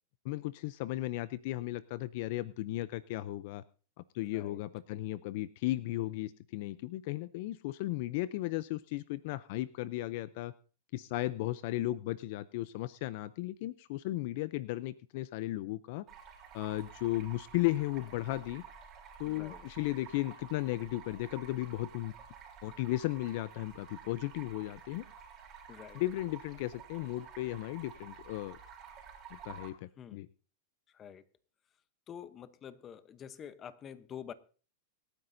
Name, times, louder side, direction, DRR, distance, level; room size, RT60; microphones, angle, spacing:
voice 1, 0.2-3.6 4.1-10.5 10.9-16.0 16.5-18.6 19.2-22.1 22.6-25.0 25.9-28.6 29.3-30.3, left 17 dB, 55° left, 0.5 m, -35 dB
voice 2, 4.2-4.6 17.2-17.3 19.3-19.6 25.7-26.0 30.0-30.2 30.9-31.2 32.1-34.3, left 8 dB, 25° left, 0.8 m, -47 dB
Stream, 16.1-29.7, right 6 dB, 30° right, 3.9 m, -51 dB
26.0 x 9.8 x 2.6 m
supercardioid pair, 145°, 0 cm